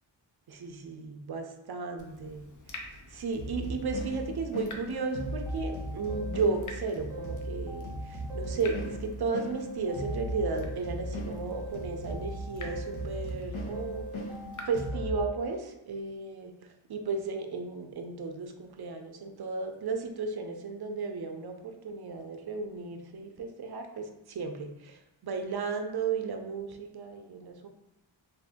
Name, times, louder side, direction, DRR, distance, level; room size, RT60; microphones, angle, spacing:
voice 1, 0.5-14.1 14.7-27.7, right 4 dB, 55° right, 5 dB, 0.5 m, -34 dB
Water tap faucet / Drip, 2.0-14.9, left 2 dB, 40° left, 0.6 m, -49 dB
sound 1, 3.4-15.2, equal, 85° left, 0.8 m, -38 dB
sound 2, 4.9-6.8 7.1-9.0 9.3-11.2 11.5-13.4 13.7-15.6, right 2 dB, 5° right, 0.8 m, -44 dB
2.6 x 2.5 x 3.5 m, 0.96 s
wide cardioid pair, 75°, 46 cm